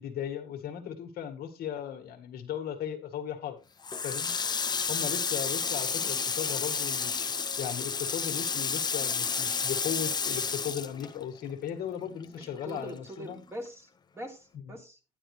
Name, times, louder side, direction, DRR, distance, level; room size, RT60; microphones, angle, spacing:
voice 1, 0.0-3.6 4.0-4.3 4.9-7.3 7.6-13.4, left 9 dB, 65° left, 1.9 m, -37 dB
Water tap faucet, 3.8-11.7 12.0-13.3, left 5 dB, 25° left, 0.8 m, -31 dB
voice 2, 12.3-13.9 14.1-15.0, equal, 15° right, 3.0 m, -43 dB
11.0 x 9.9 x 3.2 m
cardioid pair, 110°, 17 cm